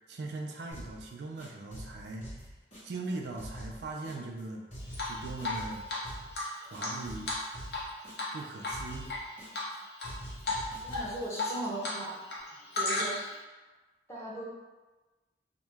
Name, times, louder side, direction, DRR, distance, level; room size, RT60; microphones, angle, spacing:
voice 1, 0.0-2.5 2.8-4.6 5.0-5.9 6.6-7.4 8.3-9.1, right 3 dB, 70° right, 1 dB, 0.4 m, -40 dB
sound 1, 0.7-1.1 1.4-3.1 3.4-4.4 4.7-6.4 6.7-8.4 8.7-9.7 10.0-11.2, equal, 40° left, 1.4 m, -45 dB
Drip, 4.9-5.6 5.9-6.0 6.3-7.9 8.2-8.3 8.6-9.2 9.5-10.1 10.4-10.6 10.9-12.0 12.2-13.4, left 3 dB, 70° left, 0.7 m, -33 dB
voice 2, 10.8-12.2 12.8-13.2 14.1-14.4, right 1 dB, 15° left, -7 dB, 0.7 m, -37 dB
2.9 x 2.1 x 3.3 m, 1.2 s
head